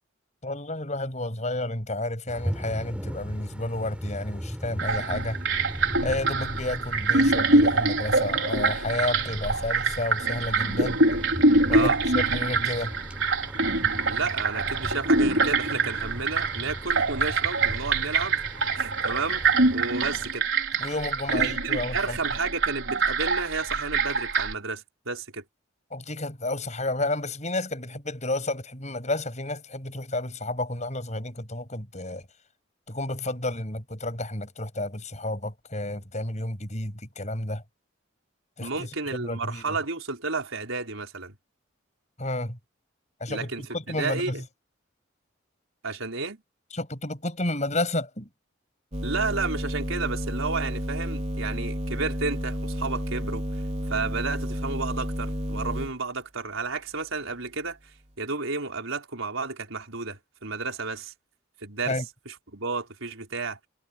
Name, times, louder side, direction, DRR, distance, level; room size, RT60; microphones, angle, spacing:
voice 1, 0.4-5.4 6.0-11.1 11.7-12.9 20.8-22.2 25.9-32.3 32.9-37.6 38.6-39.8 42.2-42.6 43.2-44.4 46.7-48.3 61.9-62.0, left 2 dB, 35° left, 7.6 m, -31 dB
sound 1, 2.3-20.3, equal, 5° right, 5.6 m, -38 dB
sound 2, 4.8-24.5, right 3 dB, 70° right, 4.6 m, -25 dB
voice 2, 14.1-18.4 18.7-20.5 21.3-25.4 38.6-41.4 43.3-43.6 43.9-44.3 45.8-46.4 49.0-53.4 53.9-57.8 58.2-61.1 61.6-61.9 62.3-63.6, right 4 dB, 85° right, 4.7 m, -32 dB
sound 3, 48.9-55.9, equal, 35° right, 3.9 m, -31 dB
head